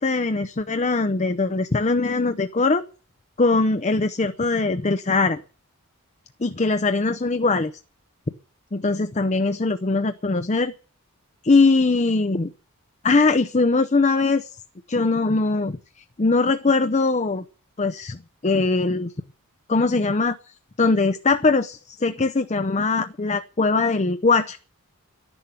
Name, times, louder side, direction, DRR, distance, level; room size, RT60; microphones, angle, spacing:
voice 1, 0.0-2.8 3.4-5.4 6.4-7.7 8.7-10.7 11.4-12.5 13.0-14.5 14.9-15.8 16.2-17.4 17.8-18.2 18.4-19.1 19.7-24.6, left 3 dB, 30° left, 10 dB, 0.6 m, -21 dB
13.0 x 11.0 x 7.2 m, 0.38 s
head